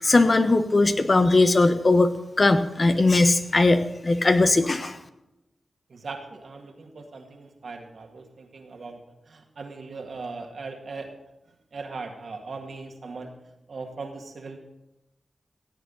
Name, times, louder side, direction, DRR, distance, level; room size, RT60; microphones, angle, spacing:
voice 1, 0.0-2.1 2.4-5.0, left 2 dB, 45° left, 8 dB, 1.1 m, -19 dB
voice 2, 5.9-11.1 11.7-13.3 13.7-14.6, right 4 dB, 70° right, 3 dB, 2.0 m, -39 dB
17.0 x 8.2 x 4.1 m, 0.91 s
cardioid pair, 50°, 0 cm